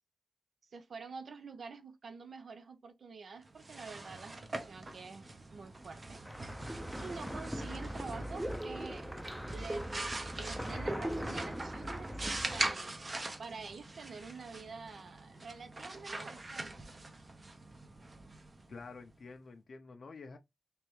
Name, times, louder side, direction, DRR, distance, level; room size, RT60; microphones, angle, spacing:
voice 1, 0.7-6.2 7.0-9.2 9.5-10.0 10.4-13.0 13.4-16.9, right 4 dB, 80° right, 0.7 m, -47 dB
sound 1, 3.5-19.1, right 2 dB, 40° right, 0.7 m, -43 dB
sound 2, 5.8-12.7, equal, 5° right, 0.5 m, -40 dB
voice 2, 18.7-20.4, left 4 dB, 70° left, 0.5 m, -49 dB
3.3 x 3.1 x 3.1 m
wide cardioid pair, 85°, 0 cm